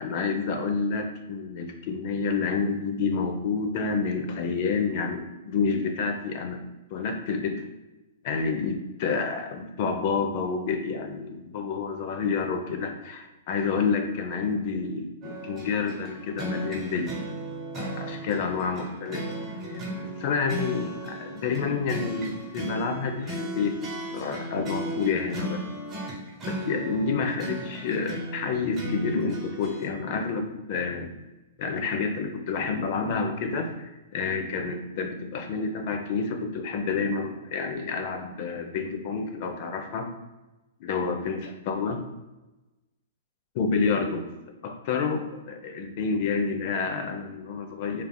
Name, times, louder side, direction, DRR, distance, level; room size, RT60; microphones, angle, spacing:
voice 1, 0.0-6.6 6.9-7.6 8.2-17.1 17.7-19.3 19.7-23.8 24.1-25.6 26.5-31.1 31.6-40.1 40.8-42.0 43.5-44.3 44.6-48.0, left 5 dB, 50° left, 4 dB, 0.5 m, -29 dB
sound 1, 15.2-29.9, right 1 dB, 25° right, 0.9 m, -36 dB
3.2 x 2.3 x 2.2 m, 1.1 s
hypercardioid pair, 125°, 0 cm